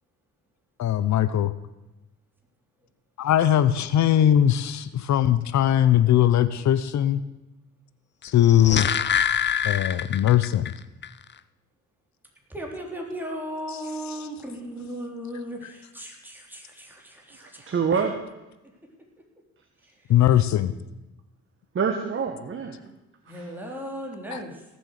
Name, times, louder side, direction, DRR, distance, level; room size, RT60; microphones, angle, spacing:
voice 1, 0.8-1.5 3.2-7.2 8.2-8.9 9.6-10.7 20.1-20.7 24.3-24.4, left 11 dB, 65° left, 14 dB, 0.8 m, -20 dB
sound 1, 8.3-10.7 11.0-11.1, left 8 dB, 35° left, 0.6 m, -25 dB
voice 2, 12.5-17.8 19.8-20.1 23.2-24.7, equal, 5° right, 0 dB, 3.5 m, -36 dB
voice 3, 17.4-18.2 21.7-22.8 23.3-23.5, right 6 dB, 45° right, 4 dB, 1.5 m, -27 dB
17.5 x 7.5 x 6.6 m, 0.99 s
cardioid pair, 90°, 30 cm